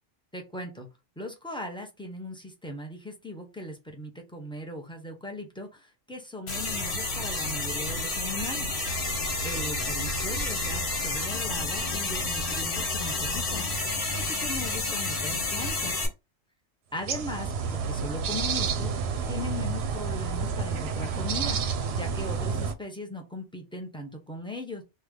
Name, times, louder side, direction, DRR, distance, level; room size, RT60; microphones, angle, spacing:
voice 1, 0.3-0.9 1.2-8.7 9.4-16.0 16.9-17.5 17.7-24.8, left 1 dB, 5° left, 1 dB, 0.6 m, -39 dB
sound 1, 6.5-16.1, left 2 dB, 65° left, 1.4 m, -30 dB
sound 2, 17.0-22.7, right 5 dB, 70° right, 0.8 m, -30 dB
3.2 x 2.3 x 3.6 m, 0.25 s
omnidirectional pair, 1.2 m